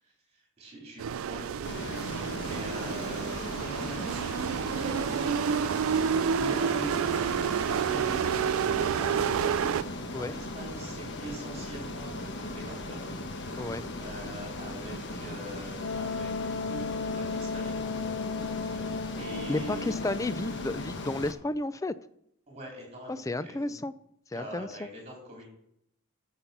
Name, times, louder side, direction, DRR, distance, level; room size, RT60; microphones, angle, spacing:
voice 1, 0.6-5.9 6.4-9.7 10.2-13.0 13.5-13.7 14.0-17.7 18.6-19.9 22.5-23.8 24.3-25.5, right 1 dB, 30° right, -1 dB, 3.9 m, -43 dB
sound 1, 1.0-9.8, right 7 dB, 65° right, 0.3 m, -29 dB
Ocean, 1.6-21.3, left 2 dB, 50° left, 1.1 m, -38 dB
Wind instrument woodwind instrument, 15.8-21.3, left 4 dB, 70° left, 0.5 m, -35 dB
voice 2, 19.5-21.9 23.1-23.9 24.3-24.9, left 2 dB, 15° left, 14 dB, 0.3 m, -32 dB
11.5 x 7.2 x 5.9 m, 0.75 s
head